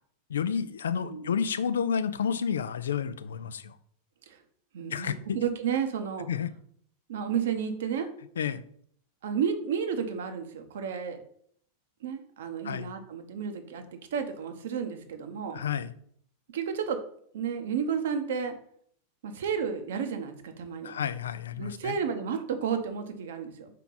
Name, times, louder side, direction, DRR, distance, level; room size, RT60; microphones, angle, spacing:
voice 1, 0.3-3.8 4.9-5.4 6.3-6.5 8.4-8.6 12.6-12.9 15.5-15.9 20.8-22.0, left 7 dB, 65° left, 0.3 m, -30 dB
voice 2, 0.9-1.3 4.3-4.4 4.7-6.3 7.1-8.1 9.2-11.2 12.0-13.8 14.1-15.6 16.5-17.0 17.3-18.6 19.2-20.9 21.6-23.7, right 7 dB, 60° right, 0.8 m, -32 dB
5.7 x 4.5 x 3.9 m
figure-of-eight pair, 90°, 0 cm